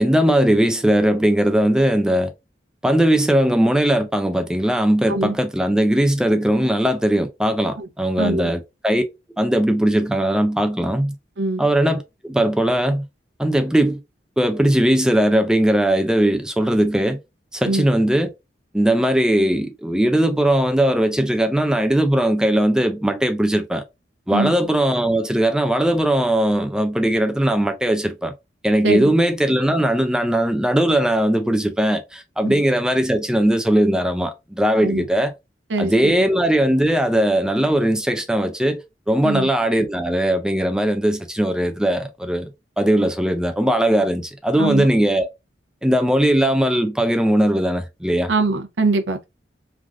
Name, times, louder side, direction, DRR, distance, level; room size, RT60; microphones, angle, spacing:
voice 1, 0.0-2.3 2.8-9.0 9.4-11.1 11.6-13.1 13.4-14.0 14.4-17.2 17.5-18.3 18.7-23.8 24.3-28.3 28.6-35.3 35.8-42.5 42.8-45.3 45.8-48.3, right 1 dB, 5° right, 0.4 m, -19 dB
voice 2, 8.2-8.5 11.4-11.6 17.7-17.9 24.3-24.5 28.8-29.1 32.4-32.6 34.7-35.1 35.7-36.2 39.2-39.5 44.6-44.9 48.3-49.3, right 3 dB, 85° right, 0.6 m, -23 dB
3.3 x 2.4 x 2.4 m
head